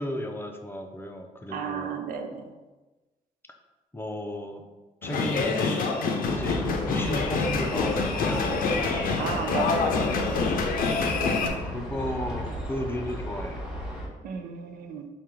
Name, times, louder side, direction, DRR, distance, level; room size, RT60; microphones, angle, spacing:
voice 1, 0.0-2.0 3.9-4.7 5.0-5.9 6.3-8.5 11.2-13.6, left 1 dB, 15° left, 4 dB, 0.5 m, -34 dB
voice 2, 1.5-2.5 9.2-10.1 14.2-15.1, right 5 dB, 75° right, 5 dB, 0.5 m, -33 dB
sound 1, 5.0-11.5, left 4 dB, 70° left, 0.5 m, -26 dB
sound 2, 6.2-14.1, equal, 5° right, 1.1 m, -35 dB
3.6 x 2.3 x 4.4 m, 1.2 s
cardioid pair, 75°, 15 cm